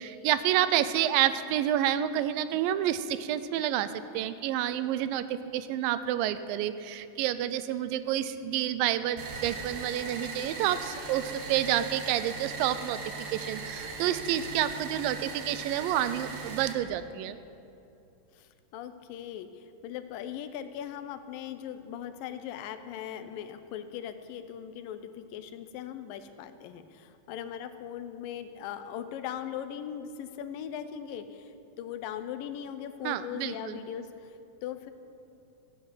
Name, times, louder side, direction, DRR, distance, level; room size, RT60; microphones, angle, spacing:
voice 1, 0.0-3.9 4.1-13.0 13.3-17.4 33.0-33.8, right 11 dB, 90° right, 13 dB, 2.3 m, -29 dB
sound 1, 9.2-16.7, right 4 dB, 65° right, 2.4 m, -39 dB
voice 2, 18.3-34.9, left 9 dB, 85° left, 10 dB, 2.4 m, -39 dB
15.0 x 8.0 x 7.6 m, 2.7 s
omnidirectional pair, 4.0 m